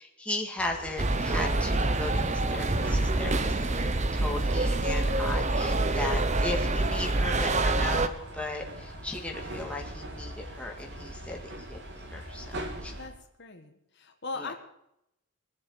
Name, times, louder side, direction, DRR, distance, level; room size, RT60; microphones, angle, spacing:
voice 1, 0.0-12.9 14.4-14.5, left 2 dB, 5° left, 1 dB, 2.0 m, -37 dB
sound 1, 0.6-13.1, right 1 dB, 55° right, 2.9 m, -42 dB
sound 2, 1.0-8.1, right 2 dB, 35° right, 0.9 m, -26 dB
voice 2, 13.4-14.5, left 3 dB, 55° left, 5 dB, 1.8 m, -39 dB
22.5 x 7.7 x 8.1 m, 0.80 s
head